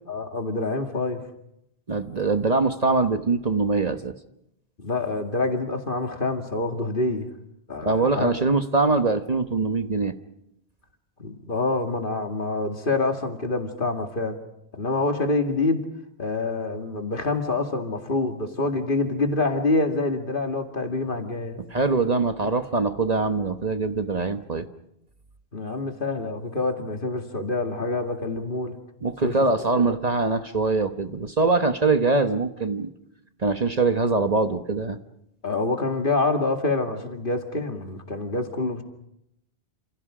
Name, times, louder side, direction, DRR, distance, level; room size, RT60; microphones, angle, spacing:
voice 1, 0.1-1.2 4.8-7.3 7.7-8.3 11.2-14.4 14.7-15.8 16.2-21.6 25.5-28.8 29.2-29.3 29.8-30.0 35.4-38.8, left 2 dB, 55° left, 5 dB, 2.4 m, -26 dB
voice 2, 1.9-4.1 7.8-10.1 21.7-24.7 29.0-32.9 33.4-35.0, right 3 dB, 40° right, 8 dB, 1.1 m, -23 dB
29.0 x 27.5 x 5.0 m, 0.80 s
omnidirectional pair, 1.1 m